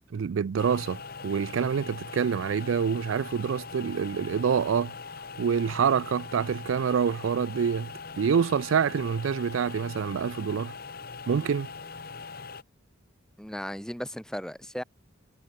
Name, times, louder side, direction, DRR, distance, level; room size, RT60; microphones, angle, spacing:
voice 1, 0.0-4.9 5.4-10.7 11.3-11.7, right 7 dB, 75° right, 0.4 m, -27 dB
sound 1, 0.6-12.6, left 5 dB, 45° left, 1.1 m, -41 dB
voice 2, 13.4-14.8, equal, 5° left, 1.5 m, -36 dB
head